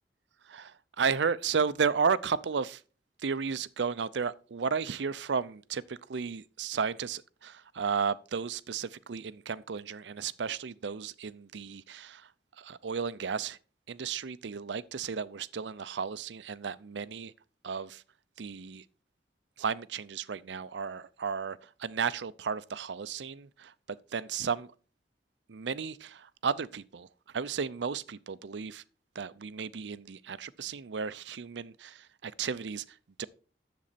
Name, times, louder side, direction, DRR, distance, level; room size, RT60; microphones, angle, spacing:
voice 1, 0.4-2.8 3.2-12.3 12.6-13.6 13.9-17.3 17.6-18.0 18.4-18.8 19.6-24.7 25.5-28.8 29.1-33.3, right 6 dB, 90° right, 0.5 m, -34 dB
10.5 x 7.6 x 4.2 m
head